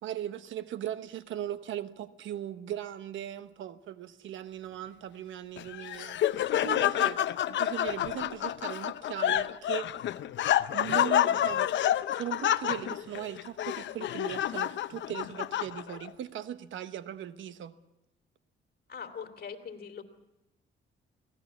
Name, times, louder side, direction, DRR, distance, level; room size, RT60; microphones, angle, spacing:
voice 1, 0.0-6.2 6.6-7.2 7.4-9.9 10.7-11.7 12.1-17.7, right 11 dB, 75° right, 12 dB, 1.1 m, -38 dB
Laughter, 5.6-16.1, left 11 dB, 65° left, 0.7 m, -29 dB
voice 2, 18.9-20.0, left 6 dB, 50° left, 6 dB, 2.8 m, -41 dB
23.0 x 17.5 x 7.2 m, 0.90 s
cardioid pair, 90°, 20 cm